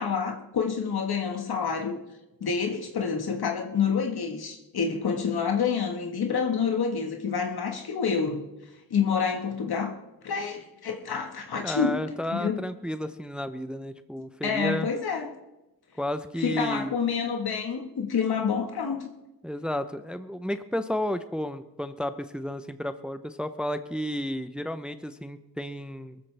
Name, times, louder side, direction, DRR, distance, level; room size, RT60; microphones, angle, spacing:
voice 1, 0.0-2.0 2.4-8.5 8.9-9.9 10.2-12.0 12.3-12.6 14.4-15.3 16.4-19.1, left 6 dB, 80° left, 3 dB, 1.6 m, -28 dB
voice 2, 11.6-14.9 16.0-16.9 19.4-26.2, equal, 5° right, 10 dB, 0.6 m, -32 dB
22.5 x 14.0 x 3.4 m, 0.99 s
wide cardioid pair, 100°, 37 cm